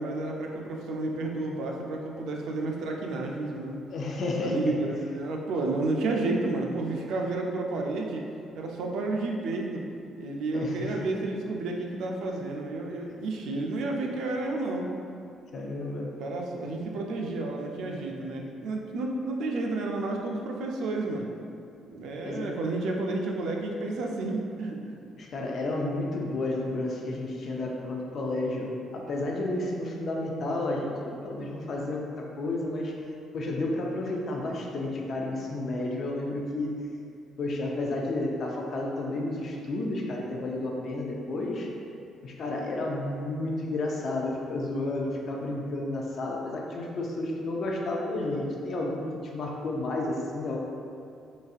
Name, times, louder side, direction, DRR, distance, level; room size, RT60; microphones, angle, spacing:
voice 1, 0.0-3.8 4.4-8.2 8.5-9.8 10.2-14.9 16.2-21.3 21.9-24.8, right 2 dB, 70° right, 1 dB, 0.4 m, -31 dB
voice 2, 3.9-5.0 10.5-11.0 15.5-16.1 22.2-22.6 25.2-32.9 33.3-36.7 37.4-41.7 42.2-49.1 49.3-50.6, left 2 dB, 40° left, -1 dB, 0.3 m, -31 dB
3.9 x 2.6 x 2.4 m, 2.5 s
cardioid pair, 175°, 0 cm